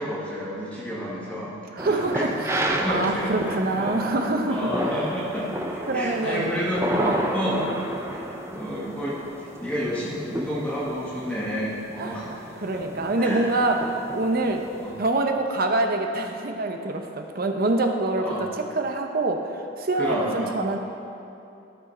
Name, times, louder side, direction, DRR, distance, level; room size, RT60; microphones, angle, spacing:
voice 1, 0.0-1.5 1.8-2.2 2.6-4.0 4.5-6.9 7.3-7.7 8.1-8.3 8.5-12.5 12.7-12.8 13.2-13.5 14.8-15.0 18.2-18.4 19.9-20.6, equal, 5° left, -8 dB, 1.4 m, -30 dB
sound 1, 1.8-14.9, right 1 dB, 15° right, 0.6 m, -32 dB
voice 2, 1.8-4.7 5.9-6.5 6.9-7.3 12.0-12.2 12.6-14.6 15.0-18.3 18.8-19.5 19.8-20.8, right 2 dB, 50° right, 4 dB, 0.8 m, -25 dB
12.5 x 6.2 x 4.4 m, 2.8 s
head